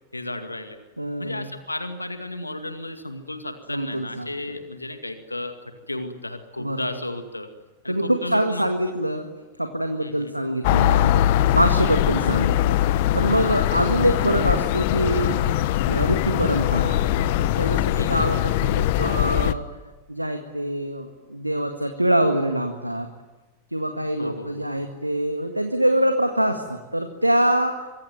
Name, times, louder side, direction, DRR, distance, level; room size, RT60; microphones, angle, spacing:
voice 1, 0.1-0.8 1.2-5.5 5.9-7.5 7.8-8.9 10.0-10.3 18.0-18.2 24.2-24.7, left 2 dB, 85° left, 7 dB, 2.1 m, -33 dB
voice 2, 1.0-1.5 3.7-4.3 6.6-6.9 7.9-9.3 9.6-11.2 11.5-15.4 15.8-17.0 17.6-19.6 20.1-23.1 23.7-27.7, right 1 dB, 85° right, 6 dB, 1.8 m, -24 dB
sound 1, 10.6-19.5, left 13 dB, 50° left, 1.1 m, -21 dB
sound 2, 11.1-11.5 12.1-12.5 13.1-13.5 14.1-14.5 15.1-15.5 16.1-16.5 17.1-17.5 18.1-18.5 19.1-19.5, right 1 dB, 5° left, 7.5 m, -46 dB
24.5 x 23.5 x 9.4 m, 1.1 s
figure-of-eight pair, 90°, 0 cm